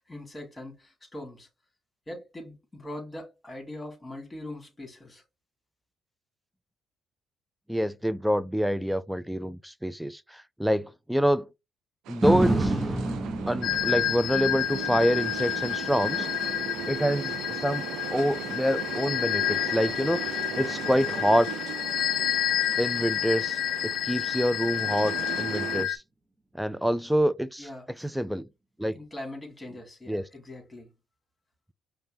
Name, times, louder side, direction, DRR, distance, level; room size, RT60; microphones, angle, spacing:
voice 1, 0.0-1.5 2.1-5.2 27.6-27.8 28.9-30.9, left 1 dB, 20° left, 2.2 m, -41 dB
voice 2, 7.7-11.5 12.1-12.7 13.5-16.3 16.9-21.5 22.8-23.6 24.0-26.0 26.5-27.7 28.0-28.5 28.8-29.0 30.1-30.2, equal, ahead, 0.3 m, -26 dB
sound 1, 12.1-25.8, right 10 dB, 75° right, 0.4 m, -38 dB
sound 2, 12.2-20.4 20.9-21.0, right 2 dB, 20° right, 0.9 m, -32 dB
sound 3, 13.6-26.0, left 11 dB, 70° left, 0.4 m, -30 dB
5.3 x 2.2 x 2.6 m
supercardioid pair, 60°, 0 cm